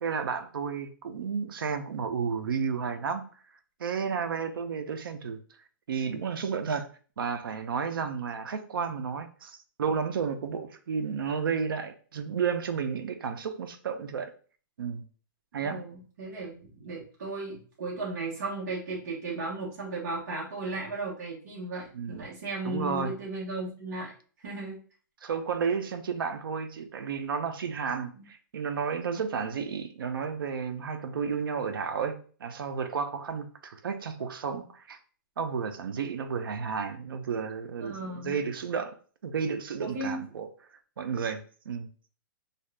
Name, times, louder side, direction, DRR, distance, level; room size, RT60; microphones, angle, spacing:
voice 1, 0.0-3.2 3.8-5.4 5.9-6.9 7.2-14.3 14.8-15.0 15.5-15.8 21.9-22.2 22.6-23.1 25.2-35.0 35.4-39.0 39.2-40.5 41.0-41.9, right 6 dB, 90° right, 0.5 m, -32 dB
voice 2, 15.5-24.1 24.4-24.8 28.1-28.2 37.8-38.4 39.8-40.2, right 2 dB, 45° right, 1.0 m, -36 dB
2.7 x 2.4 x 3.2 m
hypercardioid pair, 175°, 11 cm